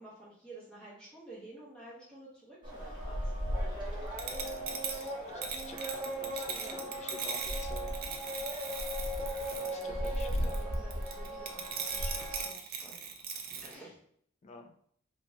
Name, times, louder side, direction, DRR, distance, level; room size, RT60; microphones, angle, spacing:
voice 1, 0.0-3.6 6.6-6.8 9.6-13.0 13.6-14.0, right 2 dB, 5° left, -7 dB, 0.7 m, -51 dB
sound 1, 2.6-12.5, equal, 25° right, 0.9 m, -36 dB
voice 2, 4.2-7.9 9.5-10.6 13.5-13.8 14.4-14.7, left 3 dB, 35° left, 6 dB, 0.3 m, -50 dB
sound 2, 4.2-13.7, right 6 dB, 50° right, 0.4 m, -39 dB
3.0 x 2.5 x 2.6 m, 0.64 s
head